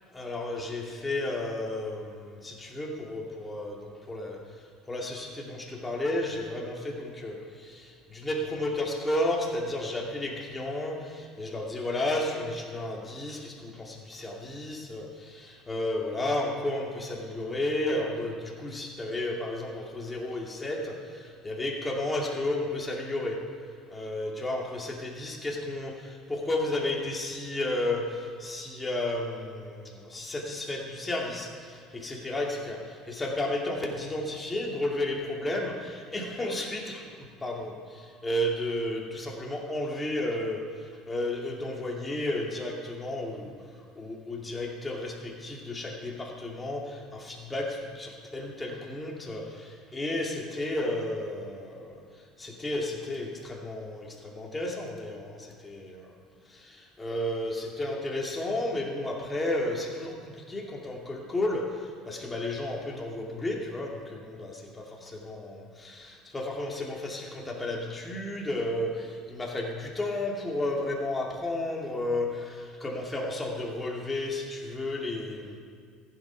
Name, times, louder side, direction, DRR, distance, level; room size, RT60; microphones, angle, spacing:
voice 1, 0.1-4.4 4.9-23.4 23.9-43.5 43.9-56.1 56.5-75.6, left 1 dB, 20° left, -1 dB, 2.5 m, -33 dB
15.0 x 7.9 x 5.1 m, 2.2 s
hypercardioid pair, 70°, 0 cm